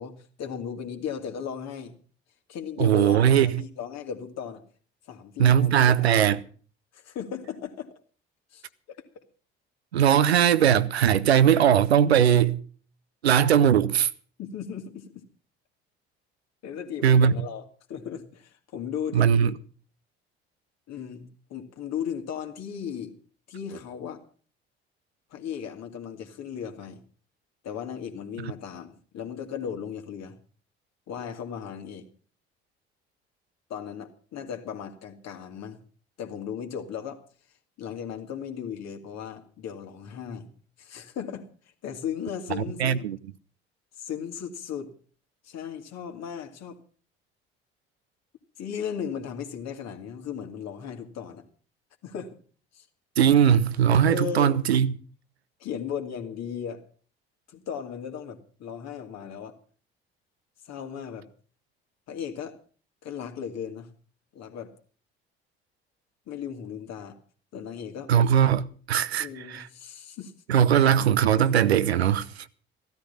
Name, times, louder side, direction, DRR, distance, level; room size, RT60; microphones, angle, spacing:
voice 1, 0.0-1.9 2.5-4.6 5.1-6.3 6.9-7.9 8.5-9.2 14.4-15.1 16.6-19.5 20.9-23.2 23.5-24.2 25.3-27.0 27.6-30.4 31.1-32.1 33.7-35.8 36.2-37.2 37.8-40.5 40.8-41.5 41.8-43.1 44.0-44.9 45.4-46.8 48.6-51.4 52.0-52.3 52.7-52.9 54.0-54.6 55.6-56.8 57.5-59.6 60.6-61.3 62.1-62.6 63.0-63.9 64.3-64.7 66.3-67.2 67.5-68.1 69.2-70.3, left 8 dB, 55° left, 2.6 m, -36 dB
voice 2, 2.8-3.6 5.4-6.4 9.9-12.6 13.2-14.1 17.0-17.4 19.1-19.5 28.4-28.5 42.5-43.2 53.2-54.9 68.1-69.7 70.5-72.5, right 9 dB, 85° right, 0.7 m, -20 dB
15.5 x 13.0 x 5.5 m
figure-of-eight pair, 50°, 31 cm